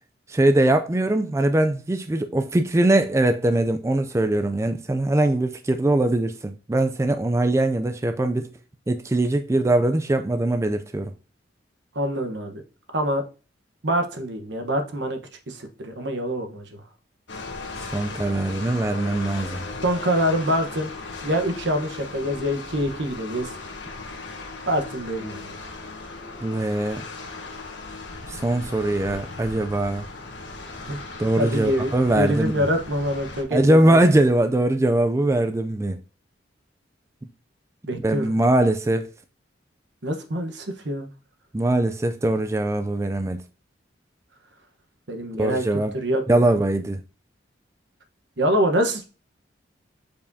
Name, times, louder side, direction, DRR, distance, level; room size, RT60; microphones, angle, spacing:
voice 1, 0.3-8.5 8.9-11.1 17.9-19.6 26.4-27.0 28.3-30.1 31.2-32.6 33.5-36.0 37.9-39.1 41.5-43.4 45.4-45.9 46.3-47.0, right 1 dB, 15° right, 0.3 m, -21 dB
voice 2, 11.9-12.6 12.9-13.2 13.8-15.2 15.5-16.8 19.8-20.9 21.2-23.6 24.7-25.6 30.9-31.0 31.4-34.1 37.8-38.3 40.0-41.1 45.1-45.6 45.9-46.5 48.4-49.0, equal, 70° right, 1.1 m, -25 dB
sound 1, 17.3-33.4, left 3 dB, 70° left, 1.3 m, -37 dB
7.0 x 5.1 x 2.7 m
head